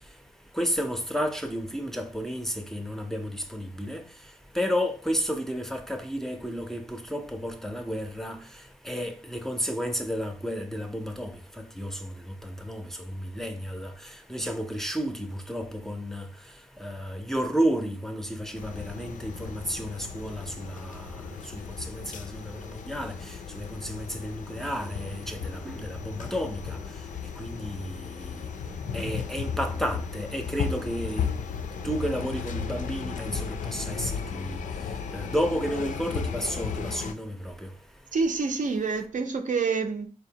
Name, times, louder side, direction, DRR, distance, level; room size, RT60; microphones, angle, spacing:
voice 1, 0.6-4.0 4.6-6.8 7.1-8.4 8.9-11.3 11.8-11.9 12.7-12.8 13.4-13.9 14.3-16.2 16.8-20.7 21.5-21.6 21.9-22.3 22.9-23.1 23.6-26.6 27.4-27.9 28.9-31.3 31.8-33.3 33.7-34.1 34.4-34.5 35.1-37.3, equal, 5° left, 0.4 m, -31 dB
sound 1, 18.6-37.1, left 6 dB, 85° left, 0.4 m, -35 dB
voice 2, 38.1-40.1, right 4 dB, 80° right, 0.5 m, -27 dB
4.2 x 2.8 x 2.8 m
wide cardioid pair, 105°, 13 cm